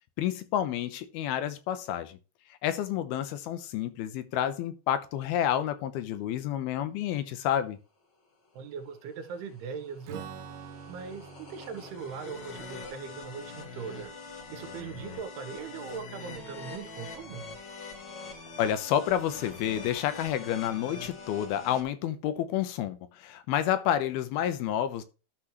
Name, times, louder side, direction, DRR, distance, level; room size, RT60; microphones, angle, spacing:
voice 1, 0.2-2.2 2.6-7.8 18.6-25.0, left 10 dB, 80° left, 2.7 m, -29 dB
voice 2, 8.5-10.3 10.9-14.1 14.5-17.5, right 6 dB, 85° right, 3.1 m, -40 dB
sound 1, 8.8-21.8, left 4 dB, 65° left, 1.1 m, -44 dB
Strum, 10.0-15.7, right 7 dB, 70° right, 2.5 m, -48 dB
12.5 x 6.0 x 3.0 m
omnidirectional pair, 4.5 m